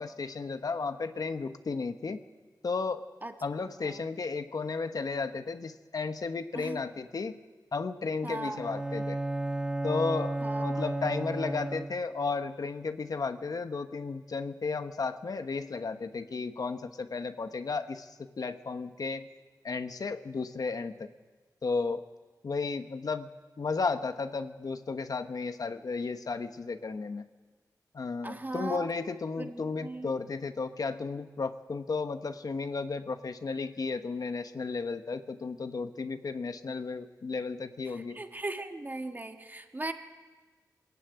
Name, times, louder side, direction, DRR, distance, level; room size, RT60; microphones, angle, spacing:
voice 1, 0.0-2.2 2.6-3.0 3.4-7.4 7.7-9.2 9.8-19.3 19.6-21.1 21.6-22.0 22.4-23.3 23.6-27.2 27.9-38.2, left 4 dB, 55° left, 9 dB, 1.0 m, -34 dB
voice 2, 8.2-8.6 10.4-10.8 28.2-28.9 29.4-30.1 38.2-39.9, right 2 dB, 25° right, 5 dB, 1.8 m, -38 dB
Bowed string instrument, 8.5-12.2, right 2 dB, 10° right, 1.0 m, -33 dB
21.0 x 14.5 x 9.4 m, 1.3 s
wide cardioid pair, 75°, 7 cm